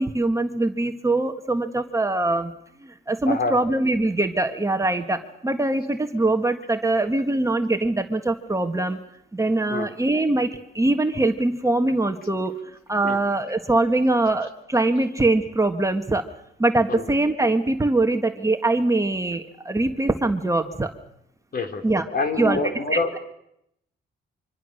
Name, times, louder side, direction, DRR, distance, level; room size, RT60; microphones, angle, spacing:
voice 1, 0.0-2.5 2.8-9.0 9.3-16.2 16.6-20.9 21.8-22.0 22.4-22.6 22.9-23.2, right 2 dB, 15° right, 6 dB, 1.6 m, -23 dB
voice 2, 3.3-3.6 9.7-9.9 13.0-13.2 16.9-17.0 21.5-23.1, left 3 dB, 50° left, 6 dB, 3.2 m, -26 dB
25.0 x 24.5 x 6.6 m, 0.78 s
cardioid pair, 90°, 20 cm